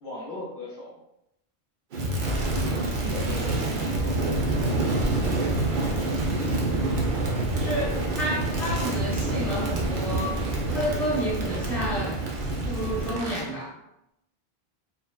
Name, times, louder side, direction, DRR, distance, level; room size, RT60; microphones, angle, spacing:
voice 1, 0.0-1.0 3.0-4.8 7.8-8.0, left 1 dB, 60° left, -5 dB, 0.7 m, -38 dB
Crackle, 1.9-13.5, right 2 dB, 60° right, 0.6 m, -27 dB
voice 2, 2.4-2.9 7.5-10.4 10.7-12.2 12.6-13.7, equal, ahead, -6 dB, 0.9 m, -31 dB
2.7 x 2.0 x 2.2 m, 0.83 s
omnidirectional pair, 1.1 m